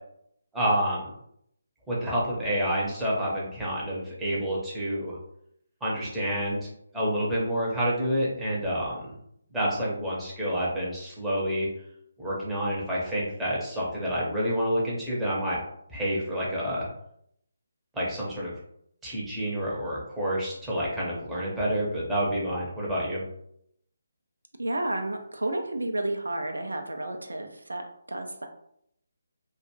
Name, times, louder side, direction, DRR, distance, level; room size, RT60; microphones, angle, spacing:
voice 1, 0.5-1.1 1.9-5.1 5.8-6.7 6.9-9.0 9.5-11.7 12.2-15.6 15.9-16.9 17.9-18.5 19.0-23.2, equal, 5° right, -7 dB, 0.7 m, -28 dB
voice 2, 24.6-28.5, right 1 dB, 85° right, 4 dB, 0.4 m, -31 dB
2.4 x 2.2 x 2.9 m, 0.72 s
figure-of-eight pair, 150°, 0 cm